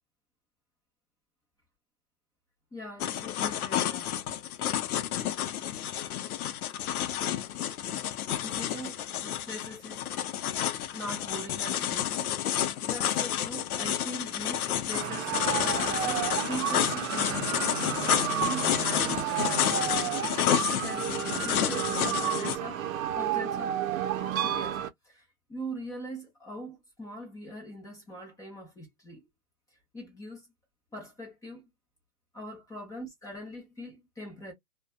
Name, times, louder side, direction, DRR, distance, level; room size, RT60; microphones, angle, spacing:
voice 1, 2.7-4.1 8.3-10.1 10.9-17.7 18.3-20.2 20.5-22.8 23.1-23.8 24.4-29.3 29.9-30.5 30.9-31.6 32.3-34.5, right 1 dB, 10° left, 0.7 m, -42 dB
sound 1, 3.0-22.6, left 11 dB, 70° left, 0.6 m, -30 dB
sound 2, 14.9-24.9, right 11 dB, 65° right, 0.6 m, -31 dB
2.5 x 2.2 x 2.3 m
hypercardioid pair, 140°, 45 cm